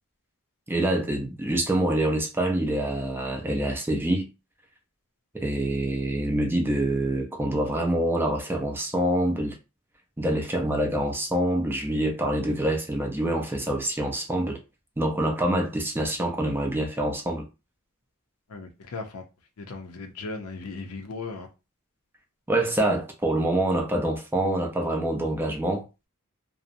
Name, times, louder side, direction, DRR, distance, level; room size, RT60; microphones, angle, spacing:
voice 1, 0.7-4.3 5.3-9.6 10.2-14.6 15.0-17.5 22.5-25.8, right 1 dB, 10° right, 0.4 m, -26 dB
voice 2, 18.5-19.2 19.6-21.5, left 3 dB, 80° left, 0.6 m, -37 dB
2.6 x 2.0 x 2.5 m
head